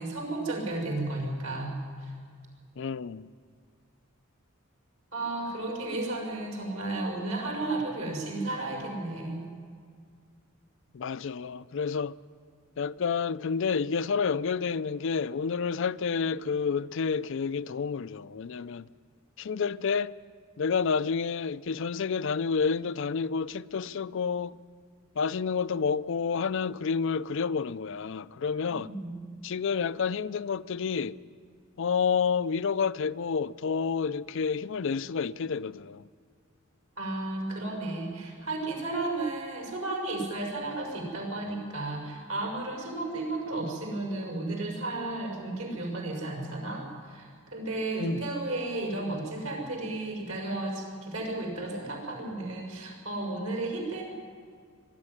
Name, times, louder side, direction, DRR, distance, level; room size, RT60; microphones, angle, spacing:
voice 1, 0.0-1.7 2.0-2.1 5.1-9.4 28.7-29.1 37.0-54.0, right 2 dB, 75° right, 6.3 m, -33 dB
voice 2, 2.8-3.3 10.9-12.1 12.8-18.9 19.4-20.1 20.6-24.6 25.2-28.9 29.4-31.2 31.8-36.0 48.0-48.3, left 5 dB, 65° left, 0.4 m, -29 dB
22.5 x 13.0 x 9.6 m
head